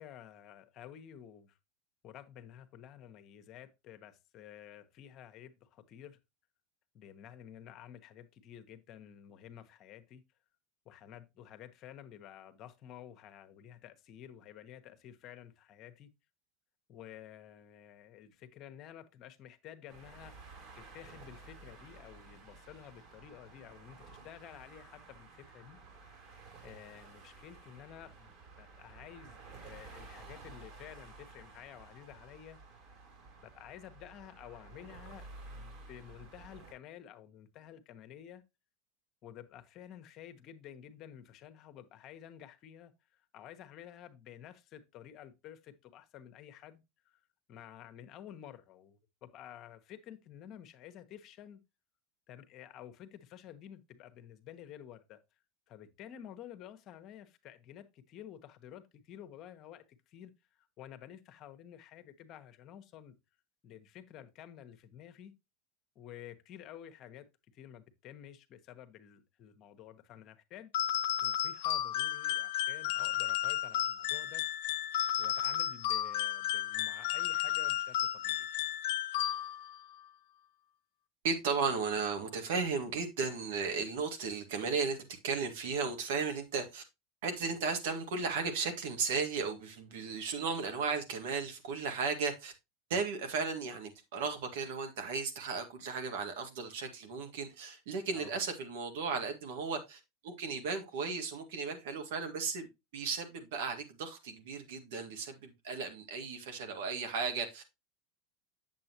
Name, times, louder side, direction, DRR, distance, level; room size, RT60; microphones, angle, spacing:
voice 1, 0.0-1.6 2.0-6.2 6.9-10.2 10.8-16.1 16.9-25.8 26.6-32.6 33.4-38.4 39.2-47.2 47.5-51.6 52.3-55.2 55.7-60.3 60.8-63.2 63.6-65.4 65.9-67.3 67.5-70.7 71.2-74.4 75.2-78.5 98.1-98.4, left 10 dB, 45° left, 1.1 m, -52 dB
sound 1, 19.9-36.7, right 3 dB, 50° right, 3.4 m, -53 dB
sound 2, 70.7-79.8, left 12 dB, 70° left, 0.5 m, -33 dB
voice 2, 81.2-85.0 85.2-86.8 87.2-92.5 92.9-102.7 102.9-107.6, right 5 dB, 70° right, 1.8 m, -35 dB
7.7 x 7.3 x 2.9 m
hypercardioid pair, 100°, 0 cm